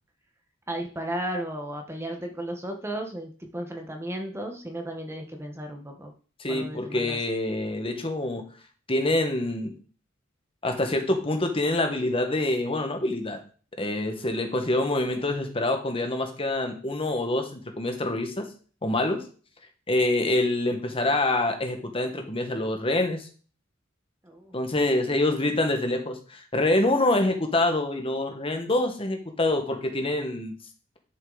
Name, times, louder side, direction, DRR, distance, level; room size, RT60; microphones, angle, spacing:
voice 1, 0.7-6.1 6.5-7.2 24.2-24.6, right 1 dB, 15° right, 3 dB, 1.1 m, -34 dB
voice 2, 6.4-8.4 8.9-9.7 10.6-13.4 13.8-18.5 18.8-19.2 19.9-23.3 24.5-30.6, left 2 dB, 30° left, 5 dB, 1.5 m, -26 dB
11.0 x 6.5 x 4.0 m, 0.41 s
head